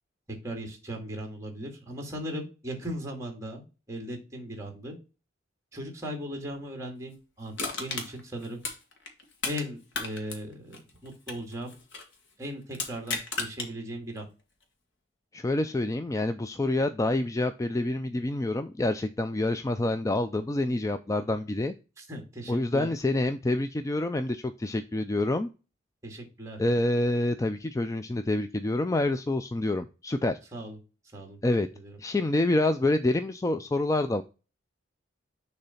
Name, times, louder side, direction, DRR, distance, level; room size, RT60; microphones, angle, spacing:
voice 1, 0.3-5.0 5.7-8.6 9.4-11.8 12.4-14.3 22.0-22.9 26.0-26.6 30.5-30.8 31.1-31.4 31.7-32.0, equal, 15° right, 2.1 m, -38 dB
Crushing, 7.6-9.7 9.9-12.1 12.7-13.7 14.2-14.3, left 3 dB, 65° left, 1.7 m, -34 dB
voice 2, 15.3-21.7 22.5-25.5 26.6-30.4 31.4-31.7 32.0-34.2, left 2 dB, 15° left, 0.3 m, -27 dB
6.8 x 3.3 x 5.6 m
head